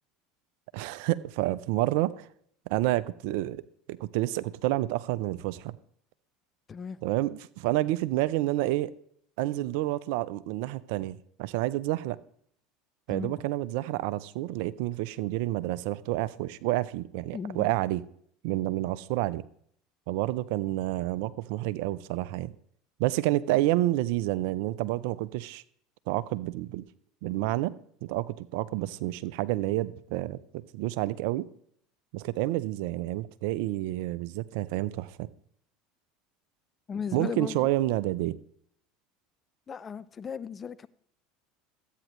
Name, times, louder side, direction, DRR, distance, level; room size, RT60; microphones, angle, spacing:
voice 1, 0.7-2.3 2.7-3.6 3.9-5.8 7.0-8.9 9.4-12.2 13.1-18.0 18.4-19.4 20.1-22.5 23.0-25.6 26.1-26.9 27.2-27.7 28.0-31.5 32.1-35.3 37.1-38.4, right 16 dB, 70° right, 0.5 m, -29 dB
voice 2, 17.3-17.7 36.9-37.7 39.7-40.9, left 6 dB, 30° left, 0.5 m, -36 dB
13.5 x 9.0 x 3.1 m
hypercardioid pair, 80°, 0 cm